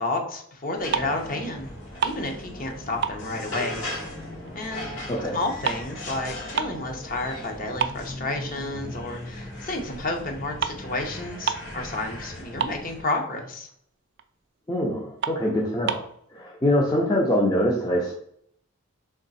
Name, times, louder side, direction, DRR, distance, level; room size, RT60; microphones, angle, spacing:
voice 1, 0.0-1.7 2.0-3.8 4.5-4.9 5.3-13.7, left 2 dB, 40° left, 3 dB, 0.8 m, -31 dB
sound 1, 0.6-1.3 1.6-2.7 3.0-4.5 4.8-6.9 7.3-7.4 7.8-8.9 9.3-9.5 10.3-10.4 10.6-10.8 11.1-11.2 11.4-11.8 12.1-12.2 12.4-13.2 13.7-13.8 14.2-14.3 14.7-14.8 15.2-16.1, right 7 dB, 50° right, 0.3 m, -30 dB
sound 2, 0.8-13.0, left 1 dB, 70° left, 1.9 m, -38 dB
voice 2, 14.7-16.0 16.3-18.1, equal, 20° left, -3 dB, 0.5 m, -24 dB
3.6 x 3.1 x 4.1 m, 0.67 s
head